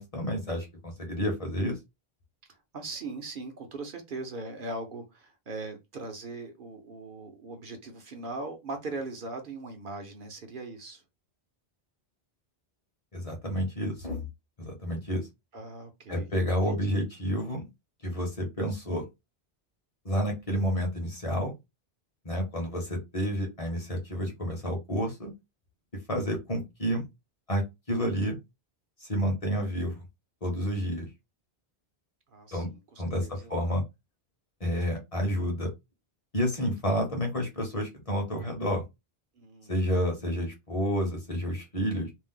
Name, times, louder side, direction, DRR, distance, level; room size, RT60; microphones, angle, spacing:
voice 1, 0.0-1.8 13.1-14.2 14.6-15.3 16.1-17.6 18.0-19.0 20.0-21.5 22.2-25.3 26.1-27.0 27.5-28.4 29.0-30.0 30.4-31.1 32.5-32.7 33.0-33.8 34.6-35.7 36.3-38.8 39.7-42.1, equal, 35° left, 0.8 m, -30 dB
voice 2, 2.5-11.0 15.5-16.3 16.6-16.8 32.3-33.5 39.4-39.7, right 3 dB, 55° right, 0.8 m, -40 dB
2.6 x 2.0 x 3.6 m
omnidirectional pair, 1.1 m